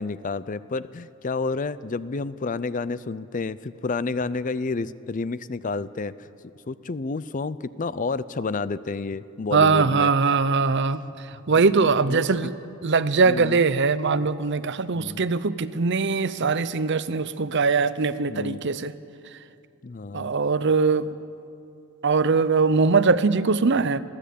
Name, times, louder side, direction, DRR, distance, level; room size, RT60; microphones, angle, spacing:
voice 1, 0.0-6.3 6.7-10.1 11.8-12.4 13.2-13.6 14.9-15.2 18.3-18.6 19.8-20.3, left 3 dB, 35° left, 16 dB, 0.4 m, -30 dB
voice 2, 9.5-11.0 11.5-12.5 12.8-18.9 20.1-21.1 22.0-24.0, right 4 dB, 50° right, 15 dB, 0.6 m, -21 dB
22.0 x 14.5 x 8.5 m, 2.6 s
head